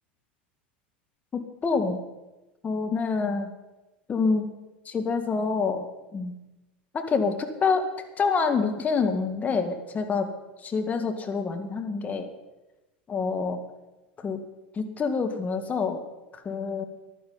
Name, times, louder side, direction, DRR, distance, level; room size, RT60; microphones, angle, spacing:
voice 1, 1.3-2.0 2.6-3.5 4.1-4.5 4.9-6.4 6.9-7.9 8.2-10.3 10.6-12.3 13.1-13.6 14.2-14.4 14.7-16.0 16.3-16.8, left 4 dB, 25° left, 5 dB, 2.0 m, -27 dB
14.5 x 11.0 x 5.7 m, 1.0 s
hypercardioid pair, 85°, 6 cm